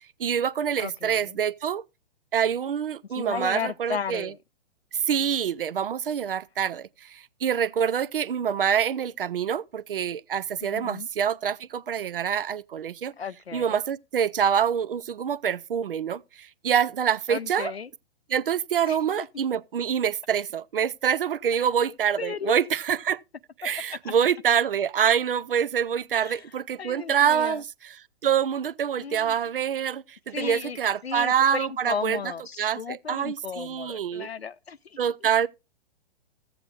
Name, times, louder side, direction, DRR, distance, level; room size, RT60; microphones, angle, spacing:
voice 1, 0.2-1.8 2.3-4.3 4.9-13.1 13.5-17.7 18.3-23.2 23.6-27.6 28.2-32.2 32.6-34.3 35.0-35.5, right 8 dB, 65° right, 0.5 m, -26 dB
voice 2, 0.8-1.4 3.1-4.4 10.6-11.1 13.2-13.8 17.3-17.9 18.9-19.3 22.2-22.7 23.9-24.1 26.1-26.5 26.8-27.6 29.0-29.4 30.3-35.3, left 6 dB, 85° left, 0.5 m, -35 dB
15.5 x 7.9 x 2.4 m
figure-of-eight pair, 115°, 30 cm